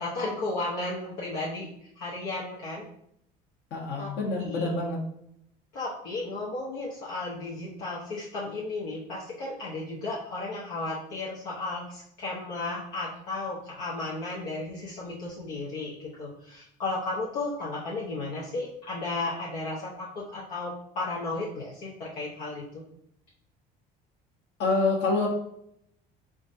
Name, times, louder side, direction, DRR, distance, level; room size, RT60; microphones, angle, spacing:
voice 1, 0.0-2.9 4.0-4.1 4.4-4.7 5.7-22.8, left 2 dB, 80° left, -7 dB, 1.1 m, -34 dB
voice 2, 3.7-5.0 24.6-25.3, left 3 dB, 60° left, -1 dB, 1.2 m, -26 dB
3.8 x 3.6 x 2.7 m, 0.74 s
supercardioid pair, 85°, 20 cm